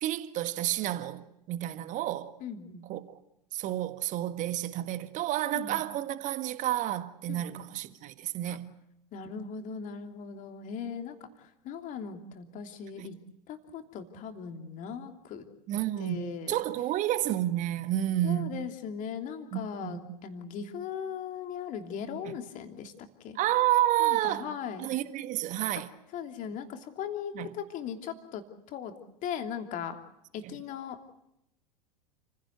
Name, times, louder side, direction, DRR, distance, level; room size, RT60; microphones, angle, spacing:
voice 1, 0.0-2.3 2.9-3.2 3.5-8.7 13.0-13.1 15.7-18.6 19.5-20.0 22.2-22.3 23.4-24.5 24.8-25.9 27.4-27.5, right 13 dB, 40° right, 1.6 m, -30 dB
voice 2, 2.4-2.8 5.5-5.8 7.3-7.6 8.5-8.6 9.1-13.2 13.5-15.4 16.0-16.6 18.2-23.4 24.0-24.9 25.7-25.8 26.1-28.4 28.7-28.9 29.2-29.9 30.3-31.1, left 7 dB, 40° left, 3.0 m, -39 dB
30.0 x 16.0 x 8.2 m
figure-of-eight pair, 85°, 20 cm